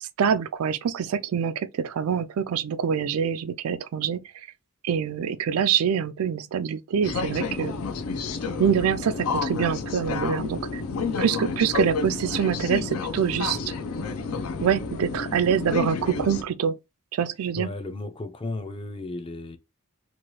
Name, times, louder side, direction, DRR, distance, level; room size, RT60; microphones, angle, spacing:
voice 1, 0.0-4.5 4.8-7.8 8.6-10.8 11.2-13.7 14.6-16.8 17.1-17.7, right 7 dB, 75° right, 0.3 m, -25 dB
sound 1, 7.0-16.4, left 4 dB, 80° left, 0.5 m, -30 dB
voice 2, 17.6-19.6, left 2 dB, 25° left, 0.4 m, -34 dB
2.9 x 2.3 x 3.0 m
head